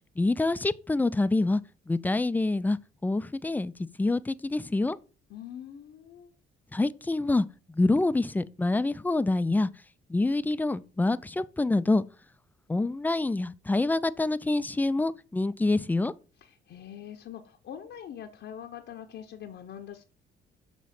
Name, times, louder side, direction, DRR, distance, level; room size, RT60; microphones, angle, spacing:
voice 1, 0.2-1.6 1.9-2.8 3.0-3.7 4.0-5.0 6.7-7.4 7.7-9.7 10.1-12.0 12.7-16.1, left 2 dB, 10° left, 0.3 m, -26 dB
voice 2, 5.3-6.3 16.4-20.1, left 9 dB, 65° left, 0.8 m, -43 dB
6.2 x 3.0 x 5.8 m
cardioid pair, 90°, 20 cm